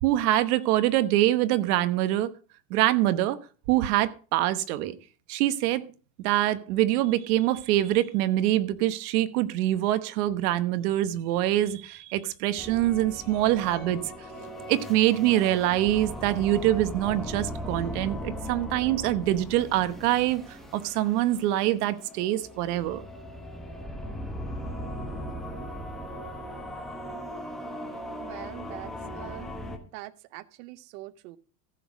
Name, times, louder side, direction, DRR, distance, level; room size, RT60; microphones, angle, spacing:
voice 1, 0.0-2.3 2.7-3.4 3.7-5.0 5.3-5.8 6.2-14.1 14.7-23.0, right 14 dB, 80° right, 12 dB, 1.1 m, -25 dB
sound 1, 12.6-29.8, equal, ahead, 1.0 m, -38 dB
voice 2, 28.2-29.5 29.9-31.4, right 18 dB, 60° right, 14 dB, 0.7 m, -43 dB
15.0 x 6.2 x 5.0 m, 0.39 s
cardioid pair, 175°, 45 cm